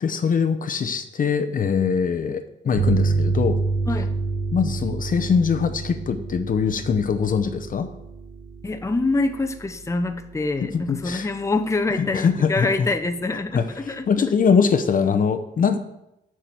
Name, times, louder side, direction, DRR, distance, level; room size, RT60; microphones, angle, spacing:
voice 1, 0.0-3.6 4.5-7.9 10.6-11.3 12.0-12.9 13.5-13.6 14.1-15.8, left 6 dB, 45° left, 8 dB, 0.8 m, -22 dB
sound 1, 2.7-12.0, right 4 dB, 55° right, 2.9 m, -29 dB
voice 2, 8.6-14.1, left 3 dB, 15° left, 6 dB, 0.8 m, -25 dB
6.9 x 6.2 x 7.5 m, 0.86 s
cardioid pair, 90°, 20 cm